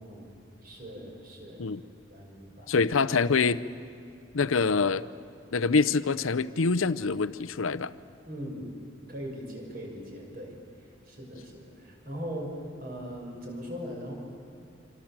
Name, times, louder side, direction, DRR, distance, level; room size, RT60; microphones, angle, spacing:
voice 1, 0.0-1.7 2.1-2.7 8.3-8.7 9.1-10.5 11.1-14.1, equal, 45° right, 0 dB, 6.1 m, -40 dB
voice 2, 2.7-3.6 4.3-5.0 5.5-7.9, left 4 dB, 85° left, 15 dB, 0.7 m, -25 dB
26.5 x 26.0 x 7.5 m, 2.5 s
head